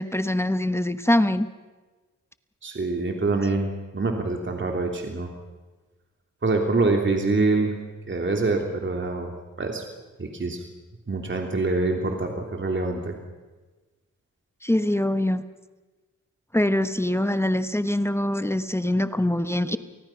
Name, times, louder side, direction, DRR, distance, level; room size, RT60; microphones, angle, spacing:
voice 1, 0.0-1.5 14.6-15.4 16.5-19.8, left 1 dB, 10° left, 11 dB, 1.1 m, -23 dB
voice 2, 2.6-5.3 6.4-7.7 8.1-9.3 9.6-9.8 10.2-10.6 11.1-13.2, right 3 dB, 40° right, 2 dB, 3.0 m, -25 dB
28.5 x 19.0 x 5.9 m, 1.3 s
cardioid pair, 55°, 30 cm